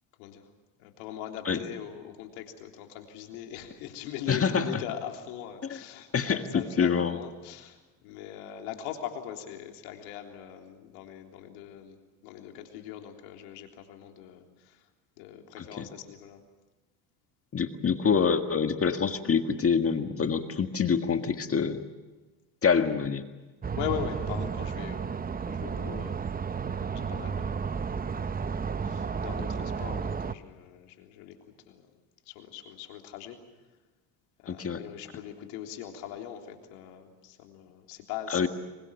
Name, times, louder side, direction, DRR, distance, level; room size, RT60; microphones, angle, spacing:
voice 1, 0.8-14.8 15.2-16.4 23.8-25.2 25.5-26.3 26.8-27.8 28.2-31.4 31.7-31.9 32.3-33.4 34.4-38.4, left 10 dB, 80° left, 3 dB, 3.6 m, -41 dB
voice 2, 4.3-4.7 5.7-5.8 6.1-7.2 15.6-15.9 17.5-21.8 22.6-23.2 34.5-34.8 38.3-38.5, left 6 dB, 30° left, 7 dB, 1.8 m, -26 dB
sound 1, 23.6-30.4, right 6 dB, 20° right, 0.8 m, -32 dB
26.0 x 23.5 x 7.2 m, 1.2 s
supercardioid pair, 85°, 46 cm